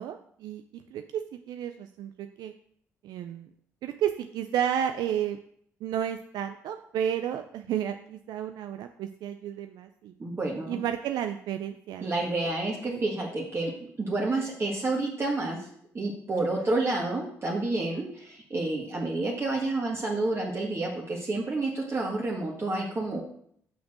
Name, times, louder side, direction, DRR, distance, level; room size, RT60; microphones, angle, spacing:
voice 1, 0.0-2.5 3.0-3.5 3.8-5.4 5.8-10.1 10.7-12.3 12.8-13.0, right 9 dB, 75° right, 7 dB, 0.4 m, -32 dB
voice 2, 10.2-10.8 12.0-13.7 14.0-15.7 15.9-23.2, right 2 dB, 40° right, -3 dB, 1.7 m, -29 dB
5.7 x 4.4 x 6.2 m, 0.65 s
supercardioid pair, 60°, 7 cm